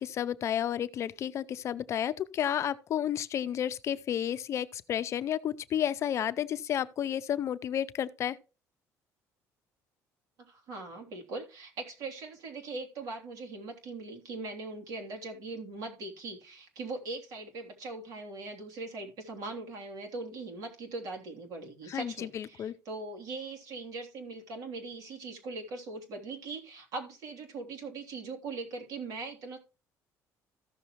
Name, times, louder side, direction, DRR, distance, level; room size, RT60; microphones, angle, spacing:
voice 1, 0.0-8.4 21.9-22.7, left 10 dB, 50° left, 0.6 m, -31 dB
voice 2, 10.4-29.6, right 3 dB, 65° right, 3.2 m, -40 dB
14.5 x 6.7 x 3.0 m
cardioid pair, 135°, 6 cm